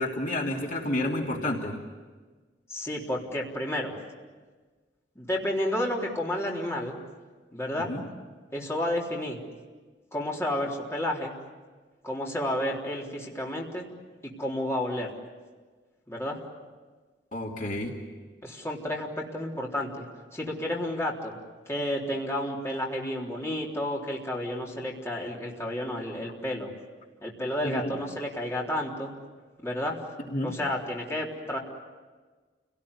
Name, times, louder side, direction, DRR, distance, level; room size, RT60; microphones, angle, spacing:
voice 1, 0.0-1.7 7.9-8.0 17.3-17.9 27.6-27.9 30.3-30.5, left 1 dB, 50° left, 0 dB, 2.9 m, -30 dB
voice 2, 2.7-3.9 5.2-7.0 7.5-7.9 8.5-9.4 10.1-11.3 12.0-13.9 14.4-15.1 16.1-16.4 18.4-20.0 20.3-21.4 21.7-26.7 27.2-29.1 29.6-30.0 30.4-31.6, left 1 dB, 15° left, -3 dB, 3.8 m, -31 dB
29.5 x 18.5 x 9.9 m, 1.4 s
head